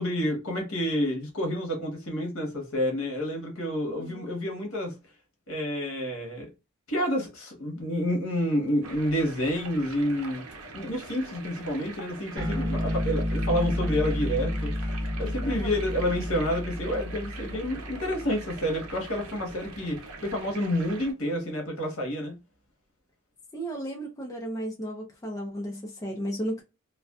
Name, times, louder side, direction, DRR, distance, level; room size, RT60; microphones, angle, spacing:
voice 1, 0.0-4.9 5.5-6.5 6.9-10.4 10.7-22.3, equal, 65° left, 1.1 m, -29 dB
voice 2, 3.8-4.3 12.6-12.8 15.4-15.8 23.5-26.6, right 1 dB, 15° left, 0.5 m, -34 dB
sound 1, 8.8-21.1, right 3 dB, 80° right, 0.6 m, -43 dB
sound 2, 12.4-19.2, left 1 dB, 20° right, 0.8 m, -31 dB
2.4 x 2.3 x 2.3 m
head